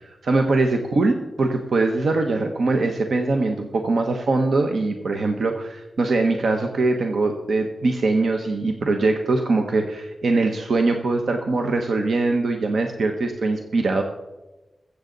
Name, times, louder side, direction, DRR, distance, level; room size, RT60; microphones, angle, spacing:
voice 1, 0.0-14.0, right 3 dB, 75° right, 4 dB, 0.9 m, -22 dB
21.5 x 7.9 x 3.9 m, 1.1 s
wide cardioid pair, 140°, 0 cm